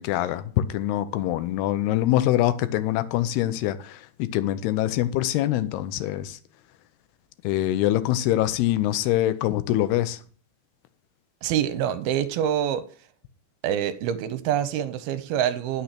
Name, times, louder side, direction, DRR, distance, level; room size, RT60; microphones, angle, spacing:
voice 1, 0.0-6.4 7.4-10.2, left 13 dB, 85° left, 2.8 m, -24 dB
voice 2, 11.4-12.8 13.6-15.8, right 10 dB, 80° right, 2.7 m, -26 dB
10.5 x 6.6 x 5.9 m
omnidirectional pair, 4.5 m